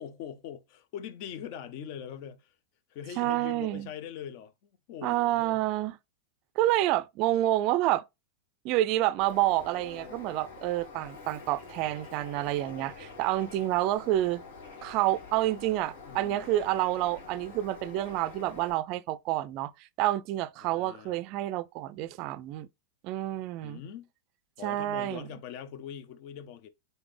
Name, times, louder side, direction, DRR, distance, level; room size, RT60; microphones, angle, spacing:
voice 1, 0.0-2.6 2.9-5.6 16.0-16.6 20.6-21.2 23.6-24.1 24.6-26.7, left 9 dB, 50° left, 0.7 m, -42 dB
voice 2, 3.2-3.9 5.0-6.0 6.6-8.0 8.6-14.4 14.8-22.7 23.0-23.8 24.6-25.3, right 15 dB, 45° right, 0.3 m, -28 dB
Bird, 9.2-18.7, left 4 dB, 80° left, 2.2 m, -47 dB
4.0 x 3.9 x 3.2 m
supercardioid pair, 145°, 0 cm